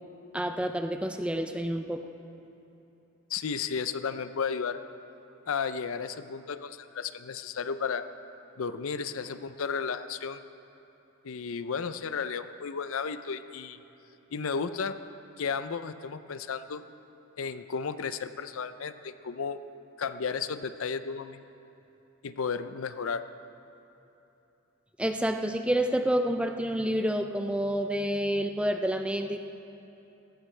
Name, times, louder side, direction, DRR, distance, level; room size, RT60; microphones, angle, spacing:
voice 1, 0.3-2.0 25.0-29.4, right 1 dB, 5° right, 6 dB, 0.5 m, -28 dB
voice 2, 3.3-4.8 5.5-8.1 8.6-10.4 11.2-13.8 14.3-15.0 15.4-16.8 17.4-19.6 20.0-21.4 22.2-23.2, left 5 dB, 70° left, 12 dB, 0.5 m, -33 dB
18.5 x 16.0 x 3.3 m, 3.0 s
head